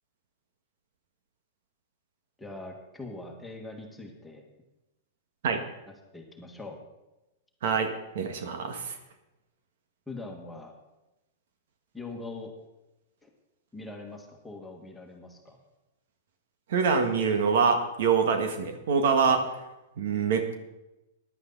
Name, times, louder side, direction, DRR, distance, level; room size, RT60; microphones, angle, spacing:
voice 1, 2.4-4.4 6.1-6.8 10.1-10.7 11.9-12.5 13.2-13.3 13.7-15.6 19.3-19.4, left 2 dB, 5° left, 1 dB, 1.8 m, -42 dB
voice 2, 7.6-9.0 16.7-19.4 20.0-20.5, right 5 dB, 70° right, 6 dB, 1.7 m, -25 dB
15.0 x 11.0 x 4.1 m, 0.98 s
supercardioid pair, 150°, 0 cm